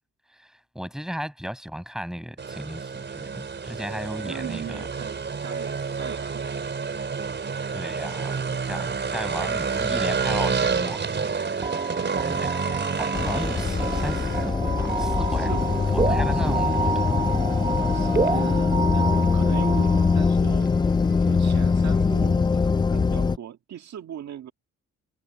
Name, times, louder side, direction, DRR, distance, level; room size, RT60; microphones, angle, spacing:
voice 1, 0.3-4.9 7.7-11.2 12.3-12.5 13.0-17.2, equal, ahead, 7.4 m, -35 dB
sound 1, 2.4-22.3, right 5 dB, 35° right, 4.1 m, -31 dB
voice 2, 4.0-6.6 12.0-12.3 15.3-15.9 16.3-16.8 17.9-20.9 21.3-24.5, right 10 dB, 65° right, 2.0 m, -39 dB
sound 2, 11.6-20.3, right 4 dB, 20° right, 1.1 m, -29 dB
sound 3, 13.1-23.4, left 4 dB, 15° left, 0.3 m, -22 dB
cardioid pair, 90°, 30 cm